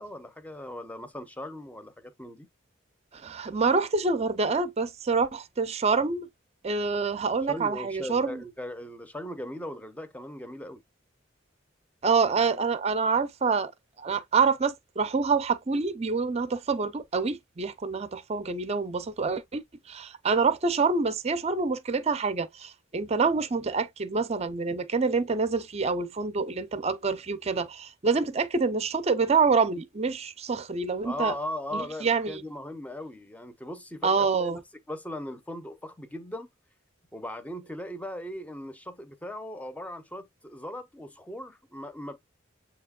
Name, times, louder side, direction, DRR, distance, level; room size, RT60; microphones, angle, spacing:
voice 1, 0.0-2.5 7.2-10.8 31.0-34.6 34.9-36.5 37.1-42.2, left 1 dB, 10° left, 0.6 m, -38 dB
voice 2, 3.1-6.3 6.6-8.4 12.0-13.7 14.0-31.3 31.7-32.4 34.0-34.6, right 4 dB, 35° right, 0.5 m, -26 dB
7.6 x 2.9 x 2.3 m
head